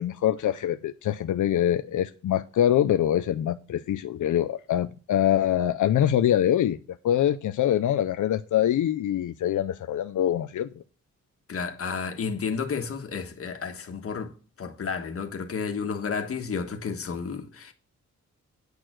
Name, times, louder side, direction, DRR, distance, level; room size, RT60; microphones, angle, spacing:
voice 1, 0.0-6.8 7.0-10.7, left 11 dB, 90° left, 0.6 m, -24 dB
voice 2, 11.5-14.3 14.6-17.7, left 5 dB, 50° left, 1.5 m, -31 dB
9.6 x 6.6 x 6.2 m
wide cardioid pair, 175°, 30 cm